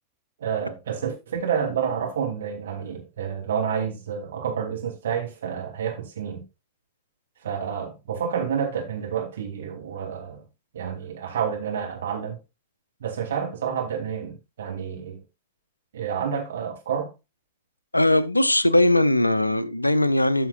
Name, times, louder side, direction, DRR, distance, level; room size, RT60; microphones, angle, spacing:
voice 1, 0.4-6.4 7.4-10.4 10.7-12.4 13.0-15.2 15.9-17.1, right 7 dB, 65° right, 3.0 m, -29 dB
voice 2, 17.9-20.5, left 1 dB, 85° left, 0.4 m, -20 dB
13.5 x 5.7 x 2.5 m
figure-of-eight pair, 90°, 0 cm